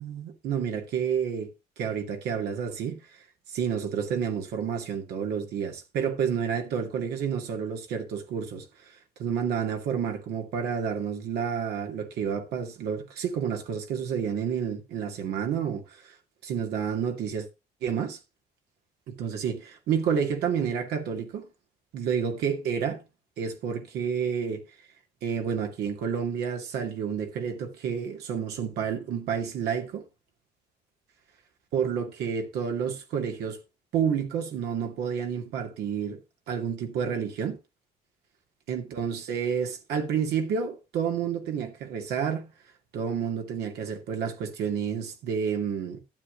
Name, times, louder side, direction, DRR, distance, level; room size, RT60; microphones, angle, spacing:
voice 1, 0.0-1.5 1.8-3.2 3.5-16.2 16.4-17.5 17.8-18.2 19.1-21.5 21.9-23.0 23.4-24.6 25.2-30.0 31.7-33.6 33.9-36.2 36.5-37.6 38.7-42.5 42.9-46.0, right 7 dB, 75° right, 2.5 m, -30 dB
12.0 x 8.7 x 3.9 m
cardioid pair, 110°, 17 cm